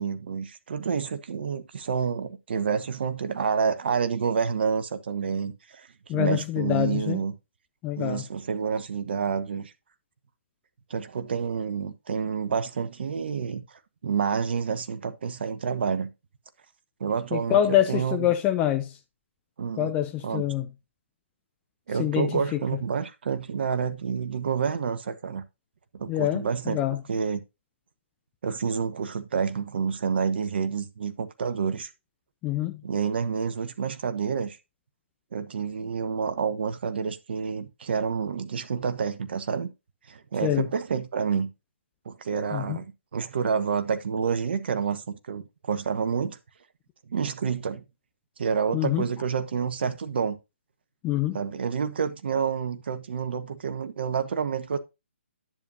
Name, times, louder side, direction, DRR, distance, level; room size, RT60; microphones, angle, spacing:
voice 1, 0.0-7.3 8.0-9.7 10.9-13.6 14.0-16.1 17.0-18.3 19.6-19.9 20.2-20.4 21.9-25.4 25.9-26.8 27.1-27.4 28.4-31.9 32.8-34.6 35.3-39.7 40.1-41.5 42.0-42.9 43.1-46.4 47.1-47.8 48.4-50.4 51.3-54.8, right 6 dB, 55° right, 1.1 m, -28 dB
voice 2, 6.1-7.2 7.8-8.2 17.3-18.9 19.8-20.7 22.0-22.6 26.1-27.0 32.4-32.8 40.4-40.7 42.5-42.8 48.7-49.0 51.0-51.4, left 12 dB, 15° left, 0.6 m, -25 dB
10.5 x 7.0 x 2.6 m
hypercardioid pair, 150°, 7 cm